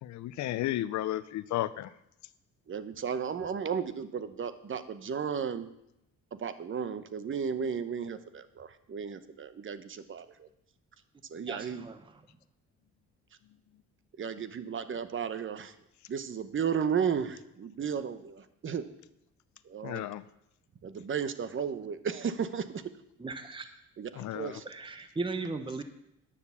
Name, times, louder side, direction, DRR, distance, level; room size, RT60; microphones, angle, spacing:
voice 1, 0.0-1.9 19.8-20.2 24.2-24.6, left 14 dB, 70° left, 0.6 m, -33 dB
voice 2, 2.7-5.7 6.3-10.5 11.3-11.9 14.2-15.7 16.1-18.8 19.7-20.1 20.8-22.8 24.0-24.6, right 7 dB, 40° right, 1.0 m, -34 dB
voice 3, 11.4-12.2 23.2-23.7 24.6-25.8, right 3 dB, 15° right, 0.9 m, -37 dB
10.0 x 6.7 x 7.1 m
cardioid pair, 90°, 30 cm